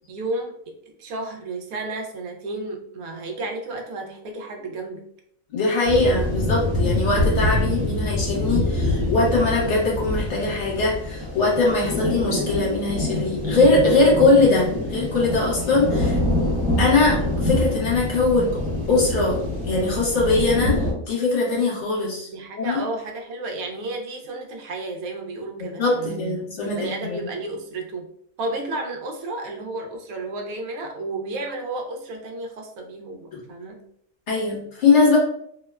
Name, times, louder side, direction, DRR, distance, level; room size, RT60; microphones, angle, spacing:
voice 1, 0.0-5.0 22.3-26.4 26.6-28.1 28.4-33.8, right 2 dB, 90° right, 2 dB, 1.0 m, -32 dB
voice 2, 5.5-16.2 16.8-18.6 18.9-19.4 19.6-22.3 22.6-22.8 25.6-27.3 33.3-33.4 34.3-35.2, left 3 dB, 60° left, -3 dB, 1.0 m, -21 dB
sound 1, 5.8-20.9, left 1 dB, 50° right, 1.2 m, -25 dB
2.7 x 2.1 x 2.2 m, 0.69 s
omnidirectional pair, 1.4 m